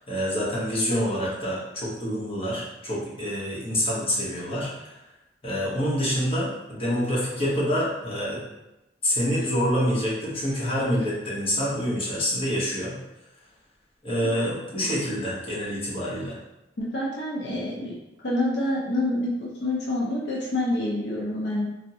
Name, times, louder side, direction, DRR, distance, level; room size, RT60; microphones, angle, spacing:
voice 1, 0.0-5.0 5.4-8.4 9.0-13.0 14.0-16.4, equal, 30° left, -8 dB, 1.0 m, -27 dB
voice 2, 16.8-17.9 18.2-21.6, left 1 dB, 75° left, -5 dB, 0.6 m, -27 dB
3.4 x 2.1 x 2.7 m, 0.95 s
head